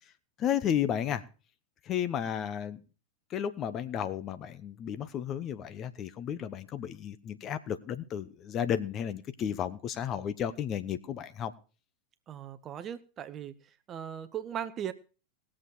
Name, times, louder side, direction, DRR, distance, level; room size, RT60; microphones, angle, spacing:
voice 1, 0.4-1.2 1.9-2.8 3.3-11.5, left 9 dB, 30° left, 1.0 m, -33 dB
voice 2, 12.3-13.5 13.9-14.9, right 9 dB, 30° right, 0.8 m, -38 dB
19.5 x 7.5 x 4.5 m
figure-of-eight pair, 90°, 0 cm